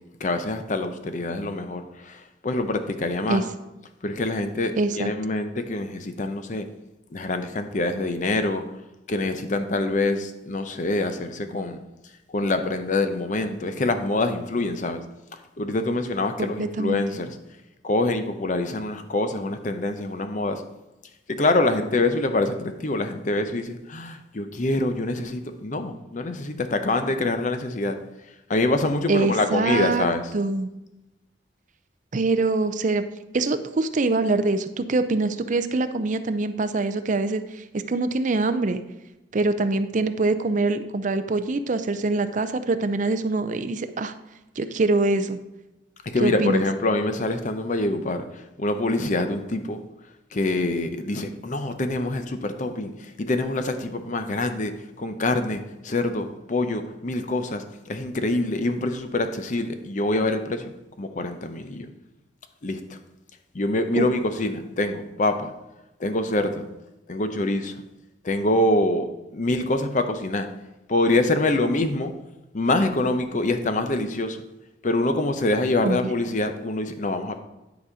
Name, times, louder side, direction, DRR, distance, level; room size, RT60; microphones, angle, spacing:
voice 1, 0.2-3.4 4.0-6.7 7.1-8.7 9.1-11.8 12.3-15.0 15.6-17.4 17.8-20.6 21.3-28.0 28.5-30.2 46.1-49.8 50.3-60.7 61.0-61.9 62.6-63.0 63.5-65.5 66.0-66.7 67.1-67.7 68.2-70.5 70.9-72.1 72.5-74.4 74.8-77.4, left 2 dB, 45° left, 8 dB, 0.7 m, -25 dB
voice 2, 4.8-5.1 16.4-17.0 29.1-30.1 30.3-30.7 32.1-33.0 33.3-38.8 39.3-44.1 44.6-45.4 46.2-46.6 64.0-64.1 75.8-76.0, right 3 dB, 45° right, 10 dB, 0.5 m, -24 dB
9.9 x 4.1 x 4.9 m, 0.97 s
head